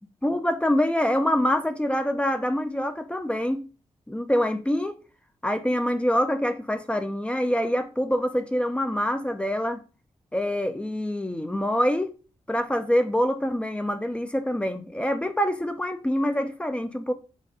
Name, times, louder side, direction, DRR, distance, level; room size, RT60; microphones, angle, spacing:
voice 1, 0.2-3.6 4.1-4.9 5.4-9.8 10.3-12.1 12.5-17.1, equal, 10° left, 0.4 m, -25 dB
4.2 x 2.5 x 4.8 m
wide cardioid pair, 130°, 12 cm